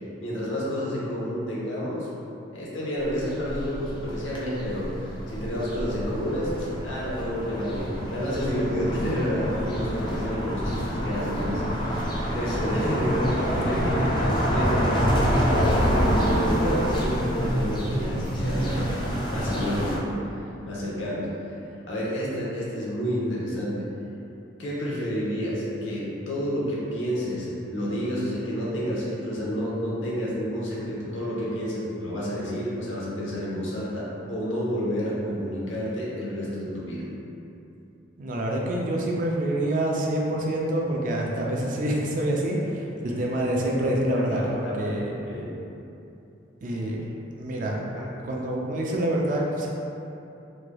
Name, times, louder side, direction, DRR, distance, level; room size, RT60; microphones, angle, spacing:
voice 1, 0.2-2.1 2.5-11.6 11.9-15.3 15.7-20.1 20.7-21.3 21.9-23.9 24.6-37.0 43.8-44.0 44.3-45.4 47.9-48.1, equal, 80° left, -6 dB, 0.8 m, -30 dB
sound 1, 3.0-20.0, equal, 25° left, 0.4 m, -27 dB
voice 2, 13.7-14.1 38.2-45.1 46.6-47.0 47.4-47.8 48.2-49.7, right 1 dB, 45° right, -2 dB, 0.4 m, -26 dB
3.5 x 3.2 x 2.2 m, 2.8 s
head